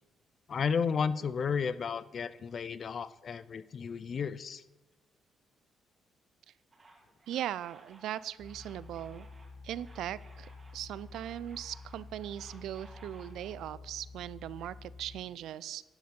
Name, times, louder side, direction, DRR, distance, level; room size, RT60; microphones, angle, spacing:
voice 1, 0.5-4.6, left 6 dB, 50° left, 16 dB, 0.4 m, -33 dB
sound 1, 6.7-13.6, right 2 dB, 30° right, 2.0 m, -59 dB
voice 2, 7.3-9.3 9.6-15.8, right 11 dB, 80° right, 19 dB, 0.3 m, -39 dB
sound 2, 8.4-15.2, left 4 dB, 70° left, 2.4 m, -49 dB
11.5 x 6.4 x 5.2 m, 1.1 s
cardioid pair, 90°, 0 cm